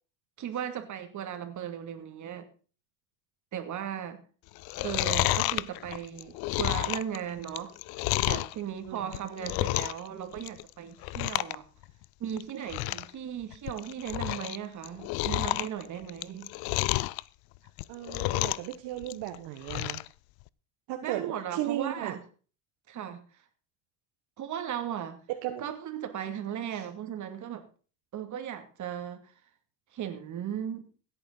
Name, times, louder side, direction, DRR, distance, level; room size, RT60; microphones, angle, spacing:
voice 1, 0.4-2.5 3.5-4.2 4.8-7.7 8.2-11.6 12.2-16.5 21.0-22.2 22.9-23.4 24.4-25.2 25.6-27.6 28.1-29.3 29.9-30.9, right 9 dB, 40° right, 7 dB, 2.5 m, -37 dB
Chewing mastication, 4.6-8.5 9.0-10.1 10.3-10.7 11.0-11.6 11.8-11.9 12.4-12.5 12.7-13.1 13.5-14.6 14.8-17.2 17.7-18.7 19.0-20.1 20.5-20.6, left 20 dB, 55° left, 0.6 m, -30 dB
voice 2, 17.9-20.0 20.9-22.2 25.4-25.6 26.7-26.8, right 13 dB, 60° right, 6 dB, 1.6 m, -35 dB
16.0 x 8.9 x 4.0 m, 0.37 s
supercardioid pair, 110°, 45 cm